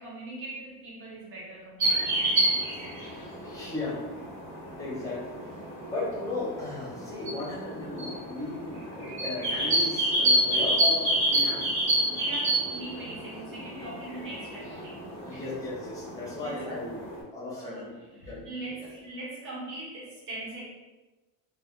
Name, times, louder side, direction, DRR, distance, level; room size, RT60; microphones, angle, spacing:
voice 1, 0.0-2.9 3.5-3.6 10.5-10.7 12.1-15.4 16.4-16.8 17.6-20.7, right 2 dB, 40° right, -5 dB, 1.0 m, -41 dB
sound 1, 1.8-17.2, right 1 dB, 60° right, 1.3 m, -29 dB
voice 2, 3.4-4.0 4.8-5.4 5.9-11.7 15.2-18.5 18.8-19.1, left 2 dB, 10° left, -6 dB, 0.8 m, -36 dB
2.4 x 2.3 x 3.7 m, 1.2 s
cardioid pair, 180°, 33 cm